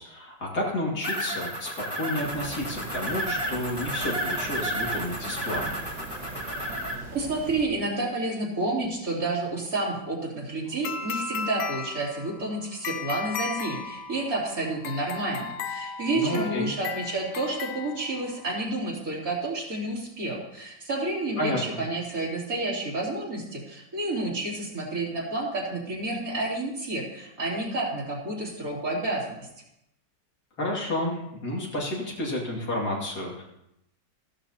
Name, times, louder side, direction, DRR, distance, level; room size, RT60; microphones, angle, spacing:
voice 1, 0.0-5.8 16.1-16.7 21.4-21.6 30.6-33.4, left 1 dB, 60° left, -3 dB, 3.0 m, -31 dB
sound 1, 1.0-6.9, equal, 15° left, 1.8 m, -32 dB
sound 2, 2.2-7.6, right 3 dB, 85° right, 2.3 m, -41 dB
voice 2, 7.1-29.5, right 2 dB, 50° right, -4 dB, 3.6 m, -30 dB
sound 3, 10.8-18.5, left 6 dB, 80° left, 1.3 m, -36 dB
15.0 x 12.0 x 2.9 m, 0.81 s
omnidirectional pair, 1.9 m